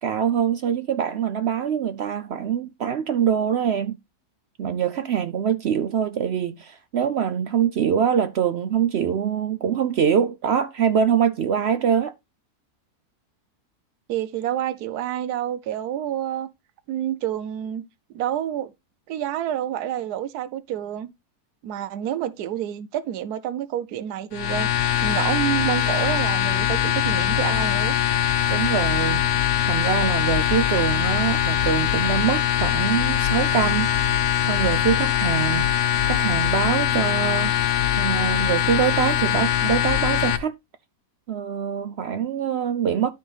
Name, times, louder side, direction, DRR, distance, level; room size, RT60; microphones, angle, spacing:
voice 1, 0.0-4.0 4.6-12.1 28.5-29.2 29.7-33.9 34.5-35.7 36.1-37.5 38.0-40.5 41.3-43.1, right 8 dB, 65° right, 0.6 m, -24 dB
voice 2, 14.1-16.5 16.9-17.8 18.1-18.7 19.1-21.1 21.6-24.7 25.0-28.0, right 11 dB, 85° right, 1.2 m, -28 dB
sound 1, 24.3-40.4, left 10 dB, 85° left, 1.4 m, -22 dB
12.5 x 4.2 x 3.3 m
omnidirectional pair, 1.6 m